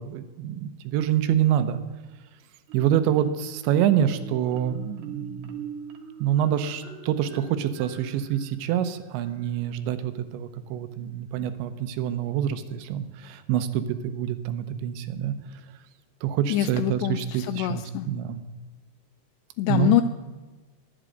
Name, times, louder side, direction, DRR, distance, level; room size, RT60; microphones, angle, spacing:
voice 1, 0.0-1.8 2.7-5.6 6.2-15.3 16.2-18.4 19.7-20.0, right 10 dB, 80° right, 11 dB, 3.0 m, -26 dB
Marimba xylophone, 2.7-3.6 4.1-9.6, right 8 dB, 65° right, 3.0 m, -42 dB
voice 2, 16.5-18.1 19.6-20.0, left 14 dB, 85° left, 10 dB, 2.5 m, -24 dB
11.0 x 10.5 x 7.8 m, 1.3 s
omnidirectional pair, 5.4 m